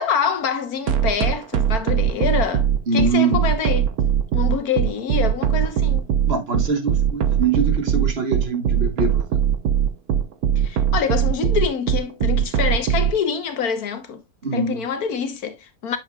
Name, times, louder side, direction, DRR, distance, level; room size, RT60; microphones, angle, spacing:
voice 1, 0.0-2.7 2.9-3.9 4.3-6.1 10.6-14.2 14.5-16.0, left 7 dB, 85° left, 1.7 m, -25 dB
sound 1, 0.9-13.1, right 9 dB, 90° right, 1.4 m, -20 dB
voice 2, 2.9-3.4 6.3-9.4 14.4-14.8, right 4 dB, 45° right, 1.6 m, -23 dB
8.7 x 6.6 x 2.4 m
omnidirectional pair, 1.5 m